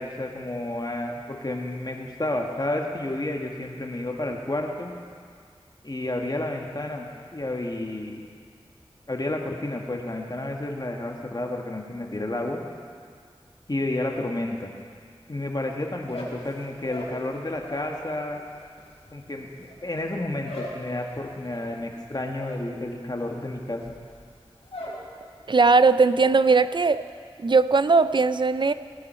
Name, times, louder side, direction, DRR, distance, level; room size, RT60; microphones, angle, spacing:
voice 1, 0.0-4.9 5.8-8.2 9.1-12.6 13.7-14.7 15.3-18.4 19.1-24.0, left 1 dB, 40° left, 1 dB, 1.5 m, -31 dB
sound 1, 16.0-18.0 18.3-25.1 25.4-25.9 26.2-26.7, left 1 dB, 75° left, 2.9 m, -41 dB
voice 2, 25.5-27.0 27.4-28.7, right 4 dB, 50° right, 14 dB, 0.4 m, -19 dB
18.0 x 9.9 x 4.4 m, 2.1 s
wide cardioid pair, 45°, 10 cm